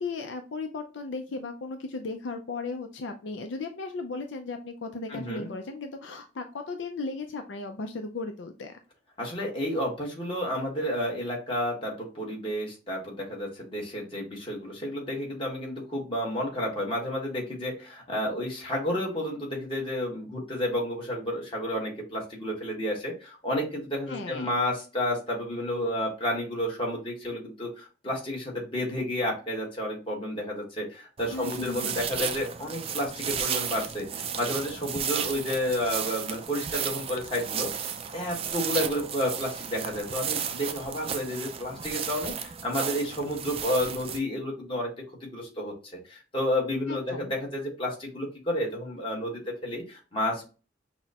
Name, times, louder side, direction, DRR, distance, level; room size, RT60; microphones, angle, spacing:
voice 1, 0.0-8.8 24.1-24.6 31.3-32.0 46.9-47.3, left 3 dB, 75° left, 5 dB, 0.5 m, -36 dB
voice 2, 5.1-5.5 9.2-37.7 38.1-44.9 45.2-45.7 46.1-50.5, left 1 dB, 30° left, -2 dB, 1.4 m, -31 dB
sound 1, 31.2-44.2, right 7 dB, 30° right, 0.3 m, -34 dB
6.0 x 2.1 x 2.9 m, 0.33 s
head